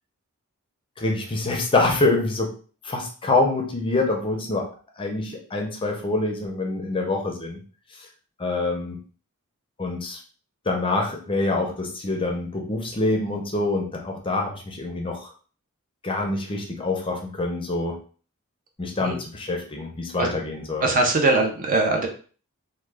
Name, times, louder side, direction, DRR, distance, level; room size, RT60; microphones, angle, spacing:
voice 1, 1.0-2.5 2.8-4.7 5.0-7.6 8.4-9.0 9.8-10.2 10.7-15.3 16.0-18.0 18.8-20.9, left 2 dB, 25° left, 1 dB, 0.5 m, -25 dB
voice 2, 20.8-22.1, right 2 dB, 40° right, 3 dB, 0.4 m, -21 dB
2.2 x 2.1 x 3.2 m, 0.40 s
head